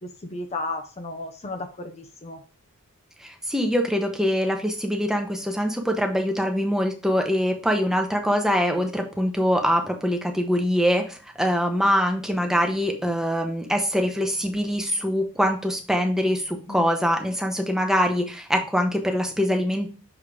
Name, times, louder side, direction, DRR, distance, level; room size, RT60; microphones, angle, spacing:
voice 1, 0.0-2.4 16.7-16.9, left 2 dB, 30° left, 5 dB, 0.7 m, -34 dB
voice 2, 3.2-19.9, equal, ahead, 3 dB, 0.9 m, -23 dB
6.8 x 3.7 x 4.8 m, 0.36 s
head